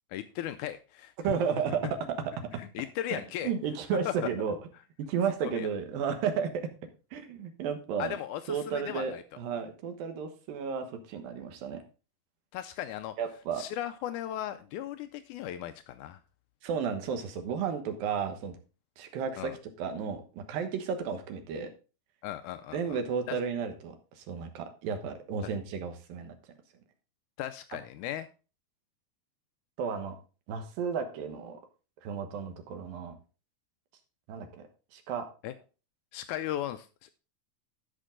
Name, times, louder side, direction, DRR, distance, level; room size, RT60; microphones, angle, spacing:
voice 1, 0.1-1.1 2.6-3.5 4.1-4.2 5.5-5.7 8.0-9.2 12.5-13.2 13.6-16.2 19.4-19.6 22.2-23.0 23.3-23.4 27.4-28.3 35.4-35.5 36.1-37.1, left 12 dB, 90° left, 10 dB, 1.7 m, -37 dB
voice 2, 1.2-2.0 3.1-4.6 5.1-6.7 7.1-8.2 8.5-11.8 13.2-13.6 16.6-18.5 19.0-19.5 19.8-21.7 22.7-26.4 29.8-30.2 30.5-31.6 32.0-33.1 34.3-34.5 34.9-35.3, right 6 dB, 75° right, 6 dB, 3.0 m, -33 dB
13.0 x 5.4 x 3.7 m, 0.34 s
omnidirectional pair, 4.2 m